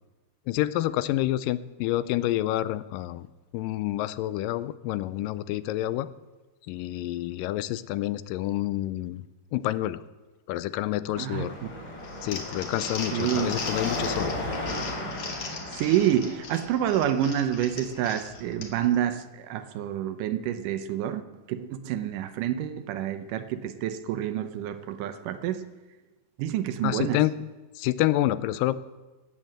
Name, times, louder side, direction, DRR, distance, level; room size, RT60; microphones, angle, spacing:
voice 1, 0.5-3.3 3.5-6.1 6.7-9.3 9.5-10.0 10.5-11.6 12.2-14.4 26.8-27.4 27.8-28.7, left 14 dB, 85° left, 16 dB, 2.3 m, -28 dB
voice 2, 11.2-11.5 13.1-13.6 15.7-21.2 21.5-25.6 26.4-27.2, right 11 dB, 75° right, 11 dB, 2.3 m, -28 dB
Car passing by / Traffic noise roadway noise / Engine, 11.3-18.6, left 1 dB, 30° left, 3.6 m, -36 dB
Crumpling crinkling, 12.0-18.9, left 4 dB, 50° left, 2.6 m, -38 dB
18.0 x 7.7 x 7.7 m, 1.2 s
omnidirectional pair, 3.9 m